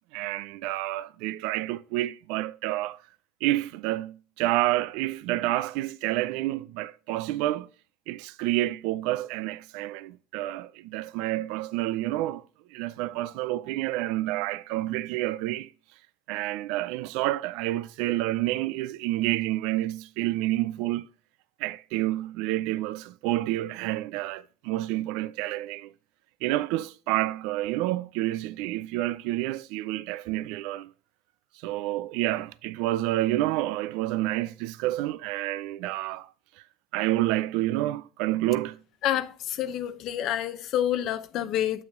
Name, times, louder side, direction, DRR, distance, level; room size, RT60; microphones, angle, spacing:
voice 1, 0.1-3.0 3.4-7.7 8.1-12.4 12.7-15.7 16.3-21.1 21.6-25.9 26.4-30.9 31.5-36.3 36.9-38.8, right 16 dB, 70° right, 0.4 m, -29 dB
voice 2, 39.0-41.8, left 11 dB, 55° left, 0.6 m, -28 dB
7.2 x 6.0 x 3.6 m
supercardioid pair, 95°, 0 cm